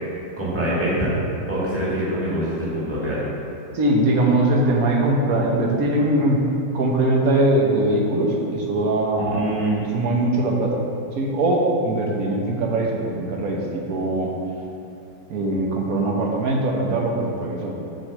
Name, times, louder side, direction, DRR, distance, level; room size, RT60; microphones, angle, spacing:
voice 1, 0.4-1.1 1.5-3.2 9.2-9.8, right 1 dB, 10° right, -7 dB, 1.6 m, -24 dB
voice 2, 3.7-6.4 6.7-9.5 9.9-10.8 11.2-14.3 15.3-17.7, right 1 dB, 55° right, -1 dB, 1.4 m, -21 dB
7.4 x 4.7 x 6.7 m, 2.7 s
omnidirectional pair, 1.9 m